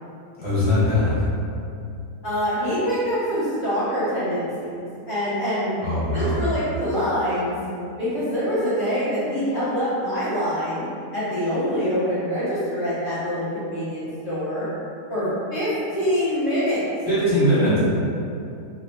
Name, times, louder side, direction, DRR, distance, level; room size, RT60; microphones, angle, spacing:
voice 1, 0.4-1.3 5.8-6.4 17.1-17.8, left 1 dB, 10° right, -13 dB, 0.5 m, -21 dB
voice 2, 2.2-5.7 6.1-7.5 8.0-14.6 15.1-16.8, equal, 40° left, -13 dB, 0.9 m, -25 dB
2.9 x 2.2 x 3.3 m, 2.6 s
omnidirectional pair, 1.7 m